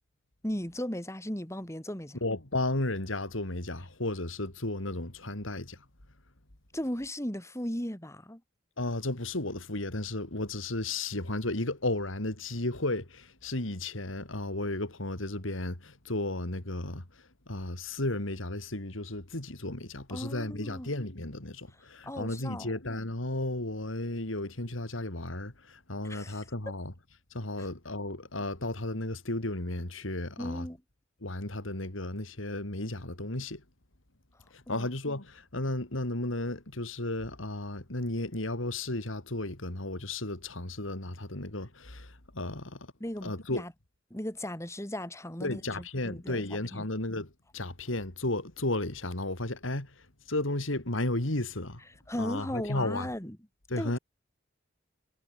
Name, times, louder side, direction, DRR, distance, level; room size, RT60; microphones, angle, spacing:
voice 1, 0.4-2.2 6.7-8.4 20.1-20.9 21.7-22.7 26.0-26.5 27.6-27.7 30.4-30.8 34.7-34.9 43.0-43.7 44.1-46.9 52.1-53.4 53.8-54.0, equal, 15° left, 3.1 m, -37 dB
voice 2, 2.2-5.8 8.8-17.0 17.5-26.9 27.3-30.7 31.2-33.6 34.5-42.9 43.2-43.6 45.4-49.9 50.3-51.8 52.2-53.1 53.7-54.0, left 2 dB, 90° left, 3.5 m, -34 dB
head